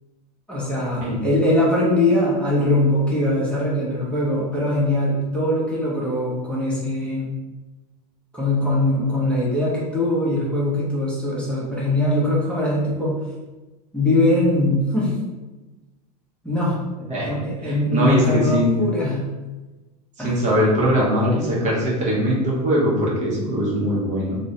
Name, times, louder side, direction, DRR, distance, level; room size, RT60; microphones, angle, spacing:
voice 1, 0.5-7.3 8.3-13.1 13.9-15.1 16.4-16.9 17.2-19.2 20.2-20.5, left 1 dB, 5° left, -7 dB, 0.8 m, -21 dB
voice 2, 17.6-18.8 20.2-24.4, equal, 35° right, -5 dB, 0.7 m, -21 dB
2.2 x 2.1 x 2.8 m, 1.1 s
hypercardioid pair, 105°, 21 cm